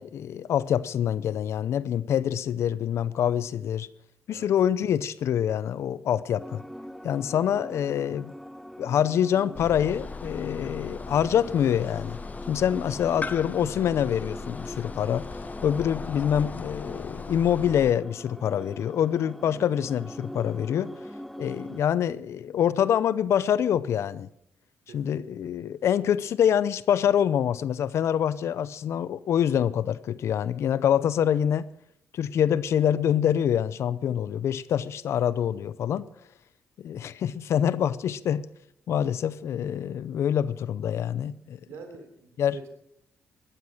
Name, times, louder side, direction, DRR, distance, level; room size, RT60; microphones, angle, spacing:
voice 1, 0.0-3.9 4.3-6.6 7.0-8.3 8.8-12.2 12.5-15.3 15.6-20.9 21.4-24.3 24.9-31.7 32.1-36.1 36.8-38.4 38.9-41.6 42.4-42.6, left 9 dB, 75° left, 0.6 m, -25 dB
sound 1, 6.4-21.8, equal, ahead, 0.6 m, -43 dB
sound 2, 9.5-17.9, left 4 dB, 35° left, 1.0 m, -38 dB
voice 2, 24.9-25.2 41.6-42.7, right 5 dB, 85° right, 3.4 m, -45 dB
14.5 x 12.5 x 6.4 m
cardioid pair, 70°, 5 cm